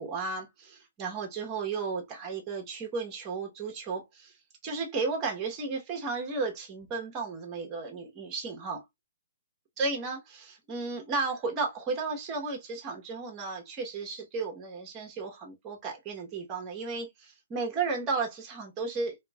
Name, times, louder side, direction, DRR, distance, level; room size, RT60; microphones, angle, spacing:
voice 1, 0.0-4.3 4.6-8.8 9.8-19.2, right 4 dB, 25° right, 1.0 m, -34 dB
2.9 x 2.7 x 2.3 m
figure-of-eight pair, 130°, 0 cm